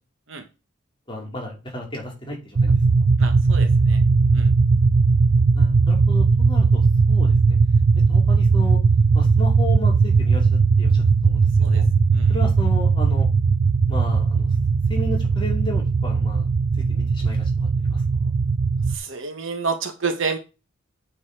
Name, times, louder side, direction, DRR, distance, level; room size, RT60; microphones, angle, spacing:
voice 1, 1.1-2.7 5.5-7.6 8.1-8.8 9.1-10.9 11.2-11.9 12.3-13.3 13.9-14.5 14.9-16.5 16.9-18.0, left 1 dB, 25° left, -1 dB, 2.7 m, -33 dB
sound 1, 2.5-19.0, right 4 dB, 80° right, 0.6 m, -18 dB
voice 2, 3.2-4.0 4.3-4.5 11.6-11.8 12.1-12.3 18.9-20.4, right 5 dB, 65° right, 6 dB, 1.3 m, -29 dB
8.8 x 4.1 x 4.7 m, 0.29 s
head